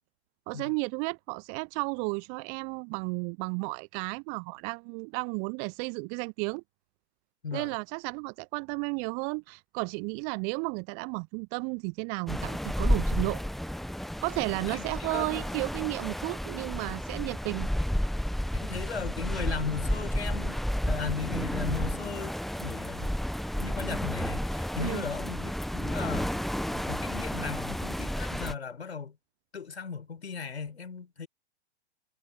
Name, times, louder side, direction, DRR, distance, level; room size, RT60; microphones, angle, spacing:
voice 1, 0.5-6.6 7.5-13.4 14.2-17.7 24.8-25.0, right 38 dB, 20° right, 0.6 m, -33 dB
voice 2, 7.4-7.8 14.6-15.5 18.6-20.6 20.9-23.1 23.6-29.2 29.5-31.3, left 5 dB, 70° left, 4.6 m, -37 dB
sound 1, 12.3-28.5, equal, ahead, 1.2 m, -31 dB
figure-of-eight pair, 110°, 34 cm